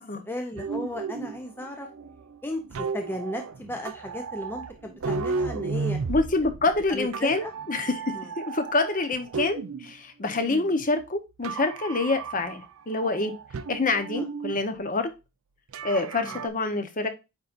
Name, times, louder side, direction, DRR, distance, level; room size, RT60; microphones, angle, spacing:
voice 1, 0.2-1.9 2.4-6.0 6.9-7.5 8.1-8.3 10.5-10.7 14.2-14.3 16.2-16.4, left 1 dB, 10° left, 3 dB, 0.6 m, -35 dB
sound 1, 0.6-9.9 10.3-11.1 11.4-12.7 12.9-14.6 15.7-16.5, right 4 dB, 65° right, 0.5 m, -34 dB
voice 2, 6.1-13.3 13.7-15.1 15.8-17.1, left 3 dB, 40° left, 8 dB, 1.0 m, -27 dB
9.2 x 4.0 x 2.5 m, 0.25 s
head